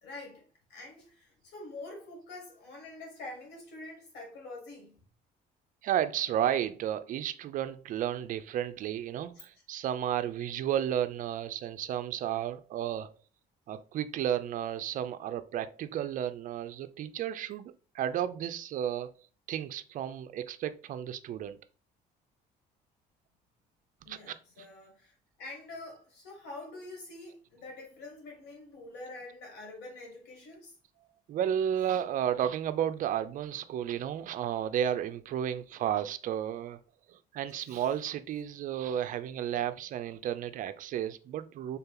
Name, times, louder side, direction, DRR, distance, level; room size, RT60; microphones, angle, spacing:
voice 1, 0.0-5.0 24.0-30.8 37.5-37.8, left 2 dB, 85° left, 1.9 m, -46 dB
voice 2, 5.8-13.1 13.7-19.1 19.5-21.6 24.1-24.7 31.3-36.8 37.1-41.8, right 10 dB, 50° right, 0.4 m, -33 dB
3.6 x 2.8 x 3.7 m
cardioid pair, 110°, 17 cm